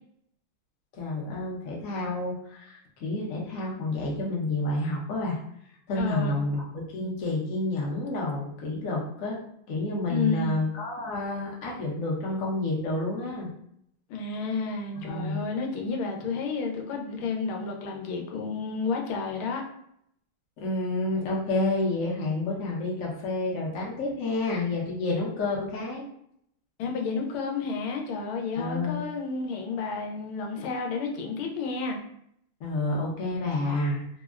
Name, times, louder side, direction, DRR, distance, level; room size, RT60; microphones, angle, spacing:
voice 1, 0.9-5.4 5.9-9.4 9.7-13.5 15.0-15.4 20.6-26.0 28.6-29.0 32.6-34.1, left 2 dB, 60° left, -3 dB, 0.9 m, -29 dB
voice 2, 5.9-6.4 10.1-10.6 14.1-19.6 26.8-32.0, left 4 dB, 90° left, 2 dB, 1.4 m, -31 dB
3.4 x 2.0 x 2.3 m, 0.72 s
omnidirectional pair, 2.2 m